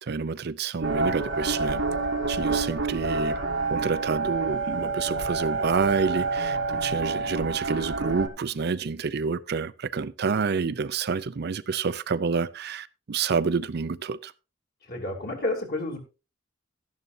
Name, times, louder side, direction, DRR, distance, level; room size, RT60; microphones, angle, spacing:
voice 1, 0.0-1.8 2.3-3.4 3.7-14.3, right 5 dB, 55° right, 0.5 m, -28 dB
sound 1, 0.8-8.3, right 3 dB, 90° right, 1.6 m, -28 dB
voice 2, 14.9-16.0, left 2 dB, 55° left, 3.1 m, -30 dB
12.5 x 11.0 x 2.7 m
head